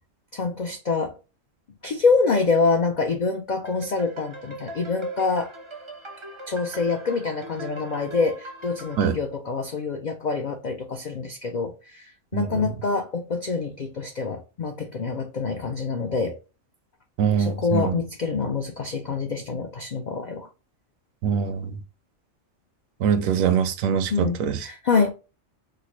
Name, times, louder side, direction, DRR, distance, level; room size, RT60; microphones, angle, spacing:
voice 1, 0.3-1.2 1.8-5.5 6.5-16.4 17.4-20.5 24.1-25.1, left 4 dB, 70° left, 0.4 m, -26 dB
sound 1, 3.6-9.1, right 1 dB, 30° right, 0.5 m, -40 dB
voice 2, 12.3-12.6 17.2-18.0 21.2-21.8 23.0-24.7, right 7 dB, 80° right, 1.0 m, -23 dB
4.6 x 2.1 x 2.9 m
omnidirectional pair, 1.4 m